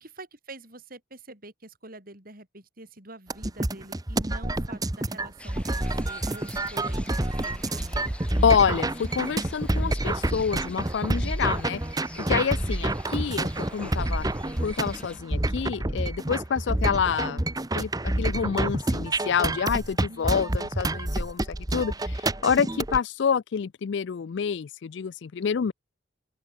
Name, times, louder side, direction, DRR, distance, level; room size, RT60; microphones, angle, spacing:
voice 1, 0.0-8.0 20.1-20.7, right 2 dB, 45° right, 6.4 m, -46 dB
sound 1, 3.3-23.0, right 1 dB, 20° right, 1.1 m, -28 dB
sound 2, 5.4-15.2, left 1 dB, 5° left, 1.6 m, -45 dB
voice 2, 8.4-14.3 14.6-25.7, left 6 dB, 65° left, 0.4 m, -27 dB
open air
head